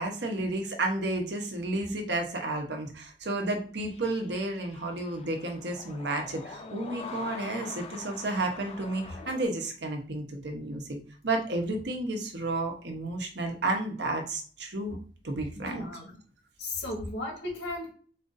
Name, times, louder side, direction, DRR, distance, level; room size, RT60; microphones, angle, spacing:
voice 1, 0.0-11.0 11.2-15.0 15.2-15.9, right 2 dB, 70° right, 1.0 m, -32 dB
sound 1, 3.8-9.4, left 4 dB, 35° left, 0.6 m, -44 dB
voice 2, 15.6-16.2 16.6-17.9, left 2 dB, 90° left, 1.8 m, -36 dB
4.3 x 2.6 x 3.9 m
head